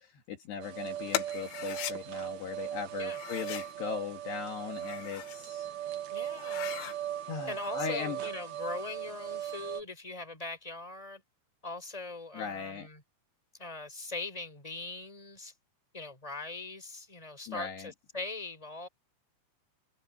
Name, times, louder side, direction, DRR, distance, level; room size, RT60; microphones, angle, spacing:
voice 1, 0.0-5.7 7.3-8.2 12.3-12.9 17.5-17.9, left 7 dB, 65° left, 3.8 m, -38 dB
sound 1, 0.6-9.8, right 11 dB, 80° right, 1.6 m, -38 dB
sound 2, 1.1-2.0 3.1-3.7 4.6-5.4 5.8-5.9 6.3-7.0, left 14 dB, 85° left, 3.9 m, -38 dB
voice 2, 6.1-6.9 7.5-11.2 11.6-13.0 13.6-15.5 15.9-18.9, left 3 dB, 5° left, 5.2 m, -41 dB
omnidirectional pair, 5.7 m